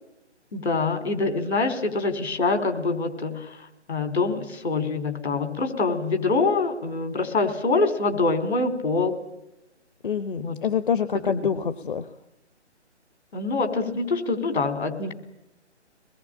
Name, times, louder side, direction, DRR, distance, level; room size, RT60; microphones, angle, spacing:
voice 1, 0.5-9.1 10.4-10.6 11.3-11.4 13.3-15.1, left 3 dB, 65° left, 8 dB, 4.3 m, -25 dB
voice 2, 10.0-12.1, left 7 dB, 45° left, 12 dB, 1.1 m, -26 dB
24.0 x 21.0 x 9.0 m, 0.91 s
figure-of-eight pair, 150°, 35 cm